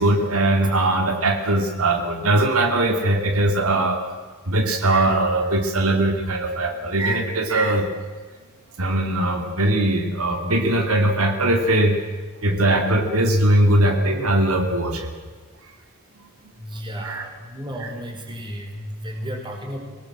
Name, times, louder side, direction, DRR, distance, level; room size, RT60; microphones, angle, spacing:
voice 1, 0.0-4.0 4.5-7.9 8.8-12.0 12.4-15.1 17.0-17.3 17.8-17.9, right 1 dB, 75° right, 4 dB, 2.7 m, -20 dB
voice 2, 16.6-19.8, equal, 20° right, 2 dB, 4.8 m, -33 dB
25.0 x 18.5 x 7.7 m, 1.4 s
head